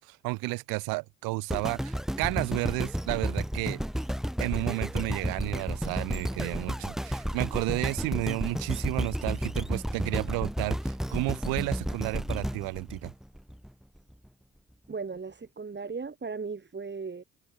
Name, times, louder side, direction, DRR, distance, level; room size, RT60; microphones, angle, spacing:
voice 1, 0.0-3.8 4.4-13.1, right 25 dB, 80° right, 2.6 m, -32 dB
sound 1, 1.5-13.7 14.2-14.3, equal, ahead, 1.0 m, -32 dB
voice 2, 14.9-17.2, right 4 dB, 30° right, 2.3 m, -37 dB
hypercardioid pair, 45°, 35 cm